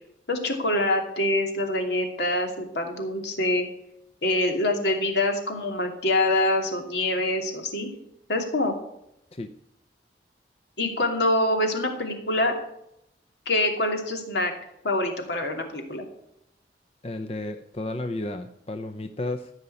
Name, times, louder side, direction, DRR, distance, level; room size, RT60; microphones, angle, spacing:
voice 1, 0.3-3.7 4.2-8.0 8.3-8.7 10.8-12.5 13.5-14.5 14.8-16.0, left 1 dB, 75° left, 3 dB, 2.8 m, -25 dB
voice 2, 17.0-19.5, left 2 dB, 35° left, 8 dB, 0.7 m, -32 dB
15.5 x 5.7 x 9.8 m, 0.80 s
head